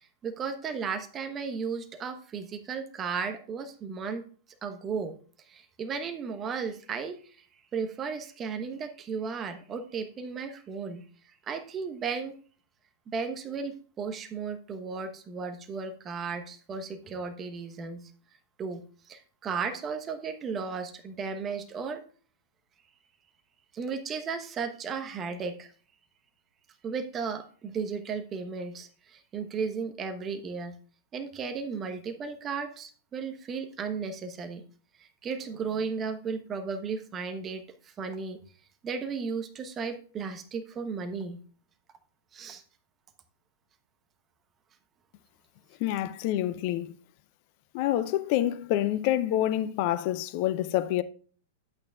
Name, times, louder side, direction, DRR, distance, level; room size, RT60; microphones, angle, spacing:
voice 1, 0.0-4.2 4.6-5.2 5.5-7.2 7.7-11.0 11.5-12.3 13.1-18.0 18.6-22.0 23.7-25.7 26.8-30.7 31.1-34.6 35.0-38.4 38.8-41.4 42.3-42.6, right 5 dB, 25° right, 1.0 m, -35 dB
voice 2, 45.8-46.9 47.7-51.0, left 13 dB, 50° left, 0.6 m, -27 dB
11.5 x 8.5 x 2.4 m
figure-of-eight pair, 100°, 0 cm